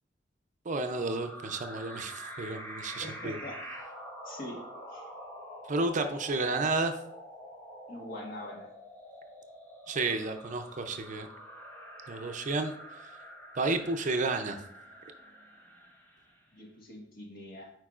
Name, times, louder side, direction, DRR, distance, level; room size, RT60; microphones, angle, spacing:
voice 1, 0.7-3.4 5.7-6.9 9.9-11.3 12.1-12.7 13.6-14.6, right 3 dB, 40° right, 7 dB, 0.5 m, -31 dB
sound 1, 0.8-16.5, equal, 10° left, 1.1 m, -47 dB
voice 2, 3.0-3.6 4.2-4.6 4.9-5.1 7.9-8.7 16.5-17.7, left 1 dB, 55° left, -1 dB, 1.5 m, -43 dB
9.0 x 4.6 x 2.4 m, 0.71 s
head